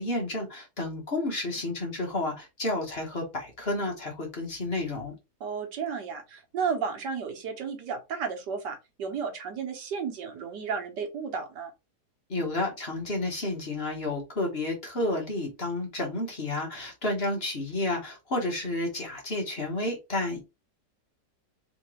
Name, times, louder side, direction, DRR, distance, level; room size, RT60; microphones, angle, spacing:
voice 1, 0.0-5.1 12.3-20.4, left 2 dB, 40° left, 1.5 m, -31 dB
voice 2, 5.4-11.7, right 6 dB, 85° right, 1.7 m, -33 dB
3.9 x 3.5 x 3.1 m
omnidirectional pair, 1.8 m